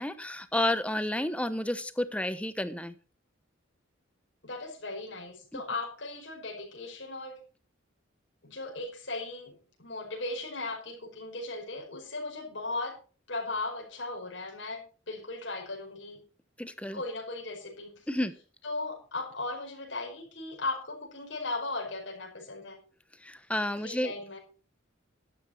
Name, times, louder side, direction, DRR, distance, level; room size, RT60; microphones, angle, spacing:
voice 1, 0.0-2.9 5.5-5.6 16.6-17.0 18.1-18.3 23.2-24.1, left 1 dB, 5° left, 12 dB, 0.9 m, -31 dB
voice 2, 4.4-7.4 8.4-9.5 9.8-13.0 13.3-16.2 16.9-17.9 18.6-22.8 23.8-24.4, left 2 dB, 70° left, 0 dB, 5.2 m, -37 dB
12.0 x 12.0 x 4.5 m, 0.38 s
head